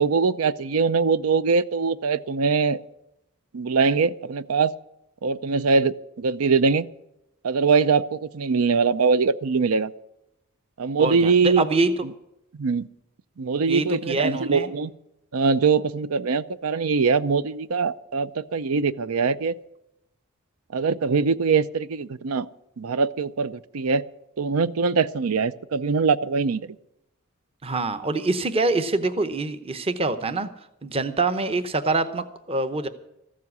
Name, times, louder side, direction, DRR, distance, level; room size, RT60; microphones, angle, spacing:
voice 1, 0.0-2.8 3.5-4.7 5.2-6.9 7.4-9.9 10.8-11.7 12.0-12.1 12.6-12.9 13.4-14.9 15.3-19.5 20.7-22.5 22.8-24.0 24.4-26.7, right 5 dB, 80° right, 16 dB, 0.6 m, -22 dB
voice 2, 11.0-11.9 13.7-14.7 27.6-30.5 30.8-32.9, right 3 dB, 25° right, 10 dB, 0.8 m, -25 dB
14.5 x 7.5 x 9.5 m, 0.85 s
head